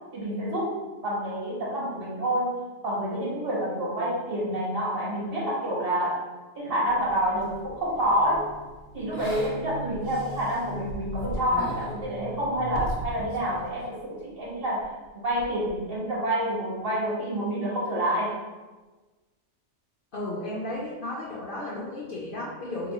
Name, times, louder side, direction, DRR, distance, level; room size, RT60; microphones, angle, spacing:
voice 1, 0.1-0.8 1.0-6.2 6.6-8.5 8.9-14.9 15.1-18.4, equal, 55° right, -5 dB, 1.0 m, -28 dB
sound 1, 6.9-13.2, left 1 dB, 85° left, 1.0 m, -41 dB
sound 2, 9.9-10.1 10.7-11.7 12.0-12.1 12.7-13.6 13.9-14.0 14.8-15.1 15.4-15.7, right 1 dB, 80° right, 0.9 m, -36 dB
voice 2, 20.1-22.9, left 1 dB, 60° left, -4 dB, 0.6 m, -34 dB
2.9 x 2.2 x 3.7 m, 1.2 s
omnidirectional pair, 1.2 m